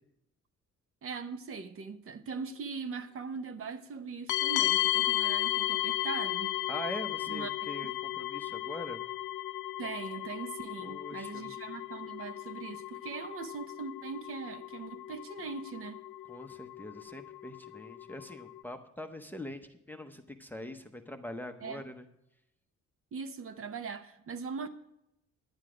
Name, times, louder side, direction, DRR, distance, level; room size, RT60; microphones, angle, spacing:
voice 1, 1.0-6.5 7.3-7.9 9.8-16.0 21.6-21.8 23.1-24.7, right 5 dB, 50° right, 0.9 m, -41 dB
sound 1, 4.3-18.6, left 16 dB, 80° left, 0.5 m, -35 dB
voice 2, 6.7-9.0 10.8-11.5 16.3-22.1, left 1 dB, 5° left, 0.7 m, -43 dB
10.5 x 9.7 x 4.9 m
cardioid pair, 150°, 30 cm